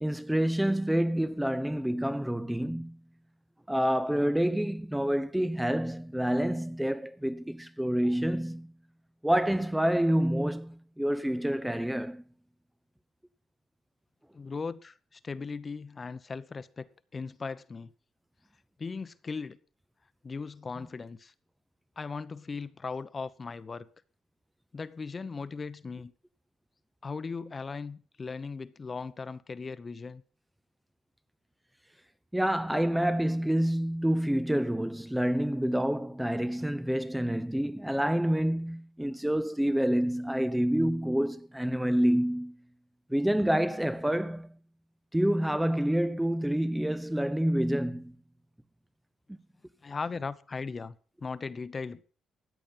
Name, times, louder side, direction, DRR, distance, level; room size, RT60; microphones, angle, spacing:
voice 1, 0.0-3.0 3.7-8.7 9.2-12.2 32.3-42.6 43.1-44.5 45.1-48.1 49.3-49.4, equal, 5° right, 0.7 m, -28 dB
voice 2, 14.3-17.9 18.8-19.6 20.2-21.3 22.0-23.9 24.7-26.1 27.0-30.2 49.8-52.0, left 4 dB, 35° left, 0.9 m, -38 dB
14.0 x 9.3 x 5.6 m
cardioid pair, 90°, 0 cm